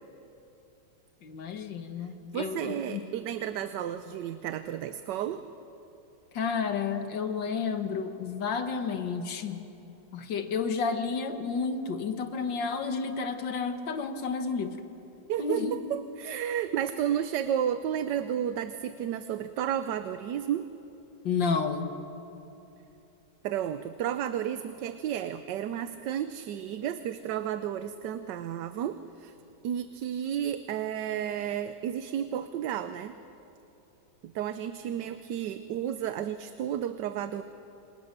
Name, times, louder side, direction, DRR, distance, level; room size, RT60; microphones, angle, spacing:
voice 1, 1.2-3.0 6.3-9.6 10.1-14.8 15.4-15.9 21.2-21.9, left 5 dB, 80° left, 7 dB, 2.1 m, -31 dB
voice 2, 2.3-5.4 15.3-20.7 23.4-29.3 29.6-33.2 34.2-37.4, right 10 dB, 75° right, 11 dB, 1.3 m, -32 dB
27.5 x 25.5 x 6.8 m, 2.9 s
omnidirectional pair, 1.9 m